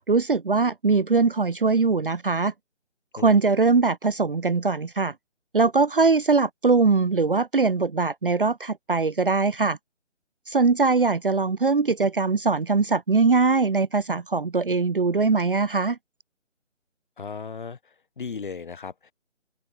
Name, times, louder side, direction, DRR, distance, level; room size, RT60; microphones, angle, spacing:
voice 1, 0.1-2.5 3.1-5.1 5.5-9.8 10.5-16.0, right 4 dB, 45° right, 0.8 m, -21 dB
voice 2, 17.2-17.8 18.2-19.1, left 5 dB, 40° left, 4.8 m, -35 dB
open air
figure-of-eight pair, 155°, 38 cm